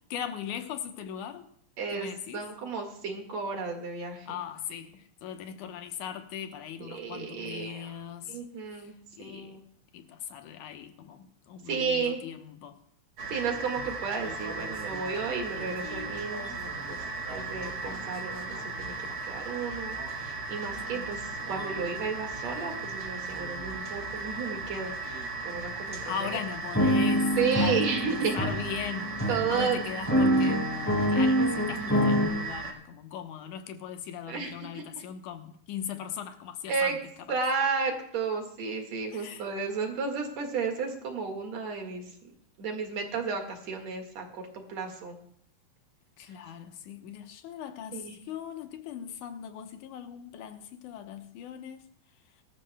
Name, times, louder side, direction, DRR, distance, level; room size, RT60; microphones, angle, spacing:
voice 1, 0.0-1.5 1.9-2.5 4.3-8.4 8.7-8.9 9.2-9.6 9.9-12.8 20.9-21.1 26.0-29.2 29.5-30.7 31.1-37.0 39.1-39.5 46.2-51.9, left 9 dB, 80° left, 2.4 m, -39 dB
voice 2, 1.8-2.1 2.3-4.4 6.8-7.9 8.3-8.9 9.2-9.6 11.7-12.2 13.3-17.0 17.3-26.4 27.4-28.3 29.3-29.8 34.3-34.8 36.7-37.0 37.3-42.0 42.6-45.2 47.9-48.2, right 5 dB, 60° right, 2.9 m, -33 dB
sound 1, 13.2-32.7, right 3 dB, 40° right, 2.2 m, -37 dB
sound 2, 13.8-13.9 14.2-18.6 20.0-20.1 20.7-21.0 21.4-21.9 22.5-22.8 23.4-23.7 24.3-24.4 25.1-25.2 25.9-26.0 26.7-32.3, equal, 5° left, 1.6 m, -28 dB
22.5 x 13.5 x 2.2 m
omnidirectional pair, 3.6 m